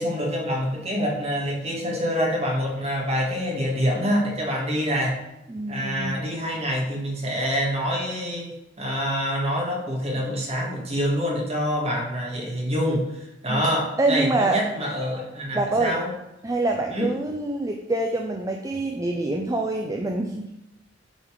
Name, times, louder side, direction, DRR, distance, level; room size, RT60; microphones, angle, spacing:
voice 1, 0.0-5.2 5.7-16.1 16.9-17.1, equal, 35° right, -2 dB, 1.9 m, -26 dB
voice 2, 5.5-6.1 13.5-13.7 14.0-14.6 15.5-16.0 16.4-20.5, right 2 dB, 20° right, 2 dB, 0.5 m, -25 dB
8.8 x 4.1 x 4.7 m, 0.88 s
head